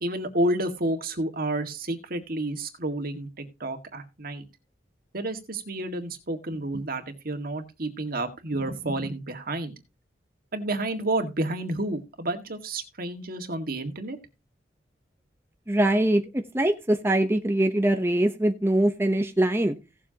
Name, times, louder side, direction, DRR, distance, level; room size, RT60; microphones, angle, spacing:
voice 1, 0.0-4.4 5.1-9.7 10.5-14.2, right 1 dB, 55° right, 1.9 m, -30 dB
voice 2, 15.7-16.2 16.5-19.8, right 1 dB, 15° right, 0.9 m, -22 dB
17.0 x 7.5 x 2.9 m
head